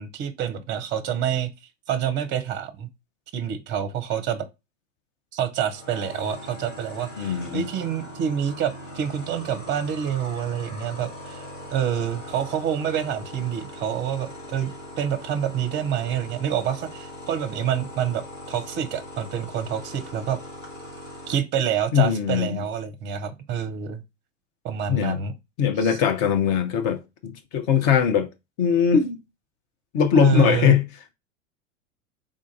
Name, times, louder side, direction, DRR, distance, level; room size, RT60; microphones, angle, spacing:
voice 1, 0.0-1.5 1.9-2.9 3.3-4.5 5.3-11.4 11.7-20.4 21.3-24.0 24.6-25.3 25.8-26.0 30.2-30.8, right 9 dB, 30° right, 0.7 m, -27 dB
sound 1, 5.6-21.4, left 1 dB, 70° left, 1.8 m, -40 dB
voice 2, 7.2-7.7 21.9-22.6 24.9-25.2 25.6-28.3 28.6-29.2 29.9-30.9, left 8 dB, 35° left, 0.7 m, -21 dB
3.7 x 2.5 x 3.9 m
figure-of-eight pair, 85°, 39 cm